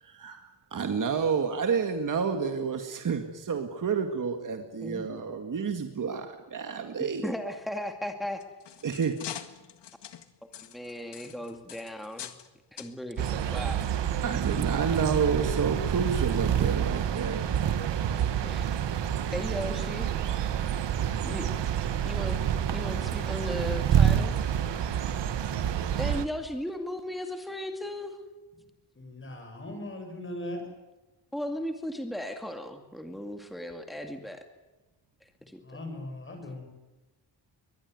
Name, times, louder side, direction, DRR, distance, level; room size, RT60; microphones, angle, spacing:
voice 1, 0.0-7.3 8.8-9.2 14.2-17.4, right 6 dB, 50° right, 6 dB, 2.0 m, -29 dB
voice 2, 7.2-8.4 10.6-12.3 12.7-13.8 18.2-18.8 19.2-20.1 21.2-21.5 22.0-22.4 22.7-24.4 26.0-28.2 31.3-34.5 35.5-35.8, left 1 dB, ahead, 5 dB, 2.1 m, -36 dB
sound 1, 8.2-12.5 12.8-12.9 13.7-13.8 14.3-14.4, left 10 dB, 85° left, 1.8 m, -43 dB
sound 2, 13.2-26.2, right 9 dB, 90° right, 1.6 m, -28 dB
voice 3, 29.0-30.6 35.4-36.7, left 1 dB, 30° left, 4 dB, 7.6 m, -39 dB
23.0 x 20.5 x 9.5 m, 1.1 s
wide cardioid pair, 145°, 41 cm